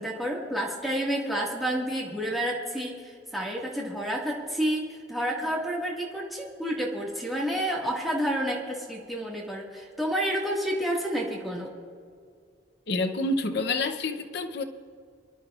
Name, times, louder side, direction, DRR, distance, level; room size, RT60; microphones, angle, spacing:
voice 1, 0.0-11.7, equal, ahead, -3 dB, 1.9 m, -30 dB
voice 2, 12.9-14.6, left 2 dB, 60° left, 7 dB, 0.8 m, -28 dB
25.0 x 12.0 x 2.5 m, 2.2 s
head